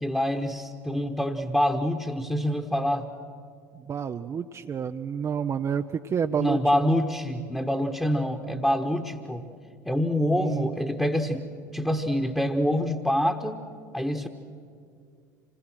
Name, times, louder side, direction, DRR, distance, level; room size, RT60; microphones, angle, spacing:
voice 1, 0.0-3.1 6.4-9.5 9.8-13.6 13.9-14.3, equal, 5° left, 3 dB, 1.3 m, -26 dB
voice 2, 3.7-6.8 10.3-10.7, right 7 dB, 30° right, 6 dB, 0.6 m, -29 dB
26.5 x 20.0 x 6.2 m, 2.3 s
figure-of-eight pair, 70°, 10 cm